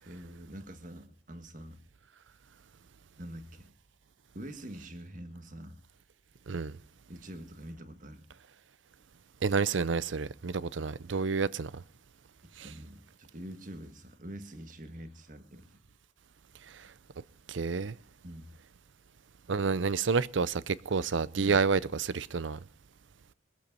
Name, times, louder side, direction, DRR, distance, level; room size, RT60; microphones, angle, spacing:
voice 1, 0.0-1.8 3.2-3.7 4.3-5.8 7.1-8.3 12.6-15.8 18.2-18.5, right 1 dB, 45° right, 1.6 m, -45 dB
voice 2, 9.4-11.7 17.5-17.9 19.5-22.6, right 5 dB, 85° right, 0.6 m, -29 dB
22.0 x 8.4 x 5.3 m
head